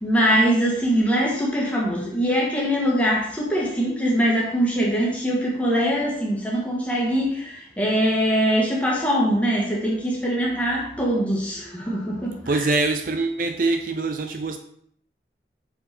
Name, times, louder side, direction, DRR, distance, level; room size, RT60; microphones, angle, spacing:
voice 1, 0.0-12.6, equal, 10° left, -3 dB, 1.7 m, -22 dB
voice 2, 12.5-14.6, right 3 dB, 50° right, 7 dB, 0.5 m, -24 dB
6.2 x 5.5 x 4.3 m, 0.67 s
head